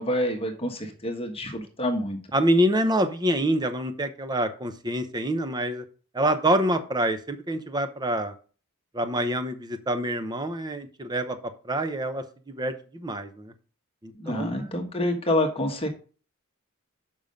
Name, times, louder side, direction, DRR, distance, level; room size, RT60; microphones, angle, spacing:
voice 1, 0.0-2.2 14.1-15.9, left 1 dB, 25° left, 4 dB, 1.3 m, -27 dB
voice 2, 2.3-5.8 6.1-8.3 8.9-11.4 11.6-12.2 12.6-13.5 14.0-14.5, right 1 dB, 20° right, 9 dB, 0.9 m, -26 dB
7.1 x 5.6 x 5.2 m, 0.39 s
head